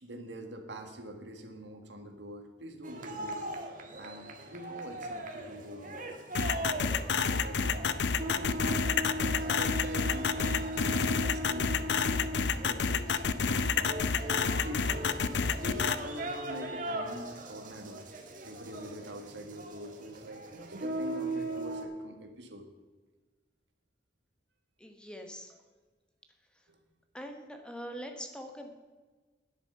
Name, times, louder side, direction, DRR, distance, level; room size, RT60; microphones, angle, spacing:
voice 1, 0.0-3.4 4.0-6.0 6.5-9.0 9.4-10.7 11.2-12.0 12.5-14.0 14.4-14.9 15.5-18.0 18.4-22.7 26.7-26.8, equal, 85° right, 5 dB, 1.6 m, -45 dB
sound 1, 2.8-21.8, right 1 dB, 50° right, 1.5 m, -39 dB
sound 2, 6.3-15.9, left 5 dB, 75° left, 0.6 m, -28 dB
voice 2, 24.8-25.6 27.1-28.7, equal, 5° left, 4 dB, 1.2 m, -43 dB
10.0 x 9.9 x 5.5 m, 1.3 s
head